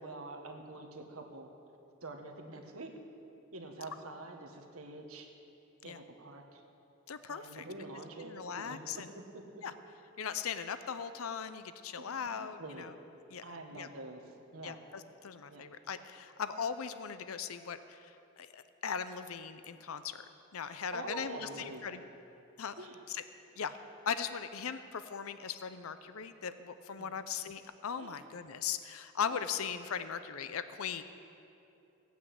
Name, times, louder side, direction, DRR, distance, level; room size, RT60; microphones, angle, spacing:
voice 1, 0.0-1.5 2.0-2.9 3.5-5.3 5.8-6.6 7.3-8.8 12.0-12.9 13.4-14.8 15.5-15.6 20.6-22.0 22.8-23.0 27.0-27.2 28.0-28.2 29.2-29.3, right 2 dB, 85° right, 3 dB, 1.7 m, -46 dB
voice 2, 7.1-7.6 8.2-9.1 9.6-9.7 10.2-12.9 13.3-13.9 14.6-18.1 18.4-20.3 20.5-22.0 22.6-22.7 23.1-23.2 23.6-23.8 24.1-31.0, left 7 dB, 75° left, 11 dB, 0.6 m, -39 dB
16.5 x 9.3 x 7.9 m, 2.8 s
head